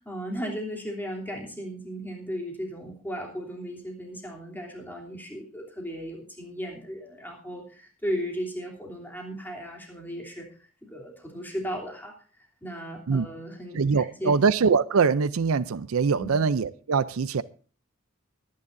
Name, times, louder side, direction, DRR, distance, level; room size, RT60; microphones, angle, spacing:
voice 1, 0.0-14.3 16.1-16.4, equal, 10° left, 3.1 m, -36 dB
voice 2, 13.7-17.4, right 5 dB, 85° right, 0.5 m, -23 dB
24.0 x 10.0 x 2.6 m
head